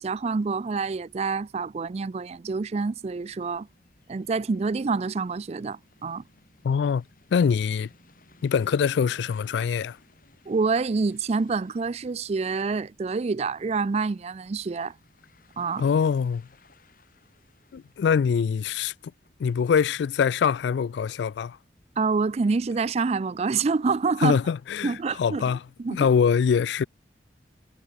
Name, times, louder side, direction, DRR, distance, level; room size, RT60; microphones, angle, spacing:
voice 1, 0.0-3.7 4.1-6.2 10.5-14.9 15.6-15.8 22.0-24.4 24.8-25.4 25.8-26.1, right 4 dB, 35° right, 0.4 m, -27 dB
sound 1, 3.1-19.6, left 3 dB, 50° left, 6.9 m, -61 dB
voice 2, 6.6-7.0 7.3-7.9 8.4-10.0 15.8-16.4 17.7-18.9 19.4-21.6 24.2-25.6 25.9-26.8, left 6 dB, 70° left, 0.3 m, -23 dB
head